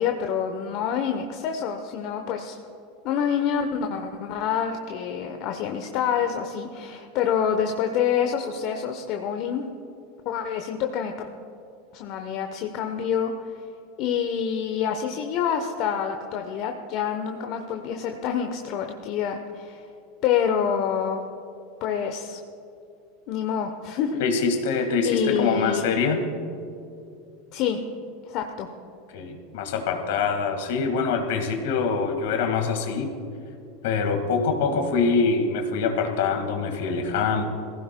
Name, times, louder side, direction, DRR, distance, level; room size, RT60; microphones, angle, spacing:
voice 1, 0.0-2.6 3.0-9.6 10.2-11.3 11.9-13.5 14.0-19.9 20.2-21.2 21.8-22.4 23.3-24.2 25.0-25.9 27.5-27.8 28.3-28.7, left 8 dB, 55° left, 4 dB, 0.9 m, -27 dB
voice 2, 24.2-26.2 29.1-33.1 33.8-37.4, left 5 dB, 70° left, 5 dB, 1.8 m, -24 dB
22.5 x 15.5 x 2.3 m, 2.7 s
hypercardioid pair, 90°, 0 cm